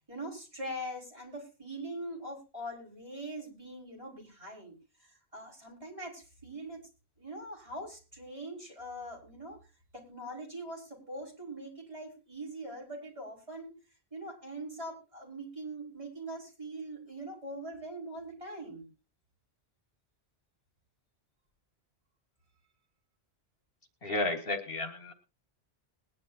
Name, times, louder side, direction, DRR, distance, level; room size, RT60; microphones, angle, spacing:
voice 1, 0.1-6.9 7.2-9.6 9.9-13.8 14.1-18.9, right 1 dB, 30° right, -3 dB, 5.7 m, -42 dB
voice 2, 24.0-25.1, left 2 dB, 60° left, 4 dB, 2.0 m, -32 dB
21.0 x 10.5 x 2.8 m, 0.31 s
omnidirectional pair, 1.1 m